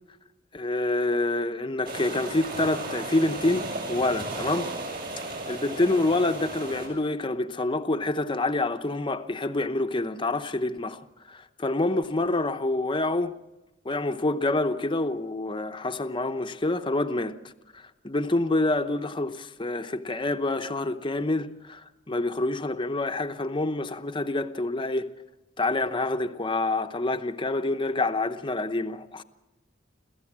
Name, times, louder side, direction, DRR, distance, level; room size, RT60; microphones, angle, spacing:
voice 1, 0.5-4.7 5.5-11.0 11.3-13.3 13.8-17.4 17.7-25.1 25.6-29.2, left 2 dB, 25° left, 0.9 m, -27 dB
sound 1, 1.8-6.9, right 2 dB, 50° right, 7.1 m, -35 dB
26.5 x 15.0 x 7.4 m
head